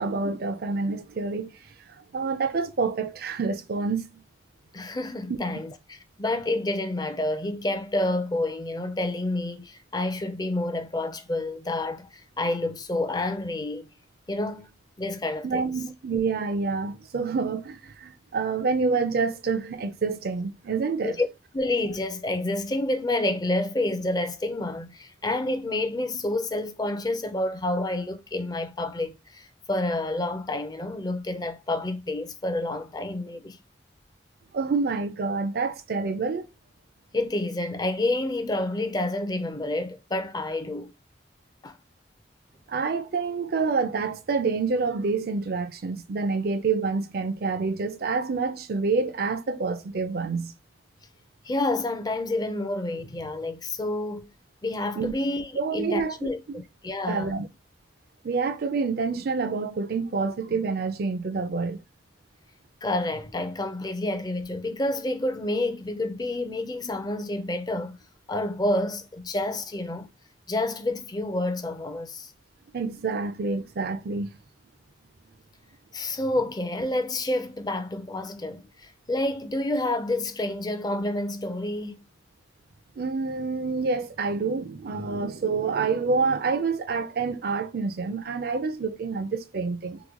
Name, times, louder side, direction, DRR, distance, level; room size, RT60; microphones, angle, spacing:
voice 1, 0.0-1.6 2.1-4.2 5.3-5.4 15.4-21.2 34.5-36.5 42.7-50.5 55.0-55.1 55.6-56.1 56.5-56.6 57.1-57.5 58.2-61.8 72.7-74.3 83.0-90.0, right 4 dB, 60° right, 0.4 m, -27 dB
voice 2, 4.7-13.9 14.3-14.7 15.0-15.7 21.0-21.3 21.5-33.6 37.1-40.9 41.6-41.8 51.4-54.3 54.6-57.4 62.8-68.0 68.3-70.1 70.5-72.3 75.9-82.0, left 2 dB, 25° left, 0.5 m, -29 dB
2.9 x 2.2 x 3.6 m
head